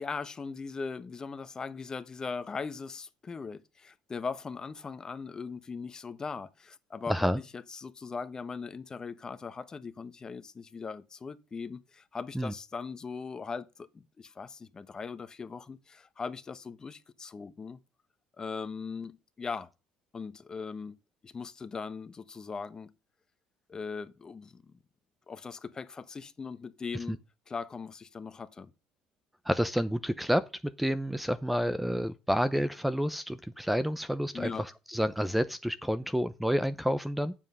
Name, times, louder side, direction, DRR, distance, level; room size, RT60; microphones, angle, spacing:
voice 1, 0.0-17.8 18.4-19.7 20.1-21.0 21.2-22.9 23.7-24.7 25.3-27.2 27.5-28.7 34.3-34.6, left 5 dB, 30° left, 1.1 m, -39 dB
voice 2, 7.1-7.4 12.3-12.5 29.5-30.4 30.8-37.3, equal, 5° right, 0.6 m, -29 dB
9.0 x 7.5 x 5.6 m
supercardioid pair, 95°, 2 cm